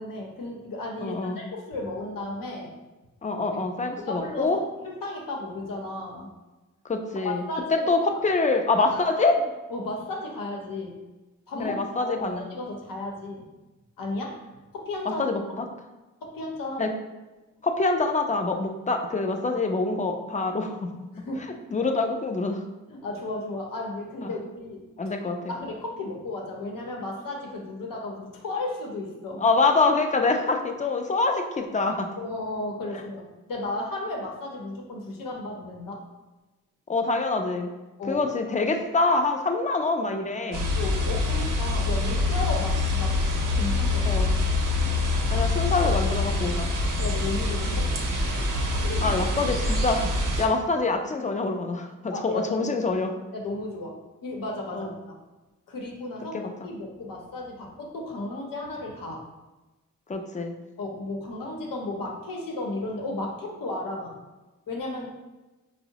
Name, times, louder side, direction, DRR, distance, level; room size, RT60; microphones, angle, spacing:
voice 1, 0.0-2.7 3.9-6.3 7.2-7.8 8.1-8.2 8.8-8.9 9.7-11.0 11.5-13.4 14.0-14.4 14.7-15.2 16.2-16.9 21.1-21.5 22.9-25.1 25.5-29.4 32.2-36.0 38.0-38.2 40.7-43.2 43.5-44.1 47.0-47.9 48.7-49.1 49.5-49.7 52.1-52.9 53.3-55.1 55.7-56.4 56.6-59.2 60.8-64.2 64.7-65.1, left 2 dB, 80° left, 0 dB, 0.8 m, -34 dB
voice 2, 1.0-1.4 3.2-4.6 6.8-7.4 7.7-9.4 11.6-12.4 15.1-15.7 16.8-16.9 17.6-20.9 21.7-22.6 24.2-24.3 25.0-25.4 29.4-32.1 36.9-37.7 38.0-40.7 44.0-44.3 45.3-46.9 49.0-53.1 54.7-54.9 56.3-56.7 60.1-60.5, left 3 dB, 25° left, 5 dB, 0.4 m, -25 dB
sound 1, 40.5-50.5, left 2 dB, 70° right, 0.6 m, -25 dB
4.5 x 2.0 x 2.8 m, 1.1 s
cardioid pair, 60°, 33 cm